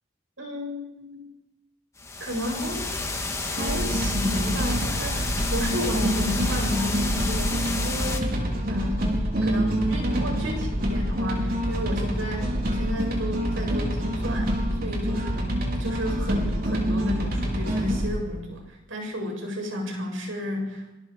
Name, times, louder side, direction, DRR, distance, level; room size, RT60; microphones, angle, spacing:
voice 1, 0.4-1.2 2.2-2.9 3.4-8.4 8.7-9.1 9.4-14.6 14.8-15.5 15.7-21.0, left 1 dB, 85° right, 1 dB, 7.4 m, -32 dB
sound 1, 2.0-8.2, left 3 dB, 15° left, 1.9 m, -31 dB
sound 2, 3.6-18.1, equal, 50° right, 4.9 m, -26 dB
26.5 x 25.0 x 5.1 m, 1.0 s
head